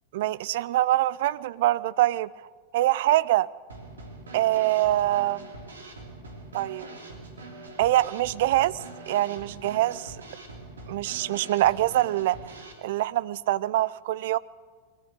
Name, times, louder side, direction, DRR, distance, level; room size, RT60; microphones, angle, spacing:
voice 1, 0.1-2.3 2.7-3.5 4.3-5.5 6.5-6.8 7.8-8.7 9.1-10.1 10.9-12.4 12.8-14.4, right 15 dB, 55° right, 18 dB, 0.5 m, -24 dB
Drum kit / Snare drum, 3.7-12.7, right 2 dB, 70° right, 2.9 m, -43 dB
21.5 x 14.0 x 8.8 m, 1.5 s
figure-of-eight pair, 90°, 0 cm